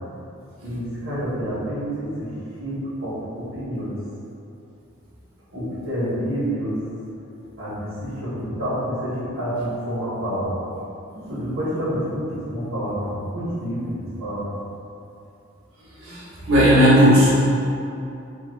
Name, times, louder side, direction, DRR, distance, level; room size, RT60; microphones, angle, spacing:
voice 1, 0.6-2.3 2.6-3.9 5.5-6.7 7.6-10.5 11.3-13.9 14.2-14.4, equal, 90° right, -12 dB, 1.2 m, -28 dB
voice 2, 16.0-17.3, equal, 75° right, -9 dB, 1.5 m, -16 dB
3.7 x 2.3 x 4.5 m, 2.7 s
head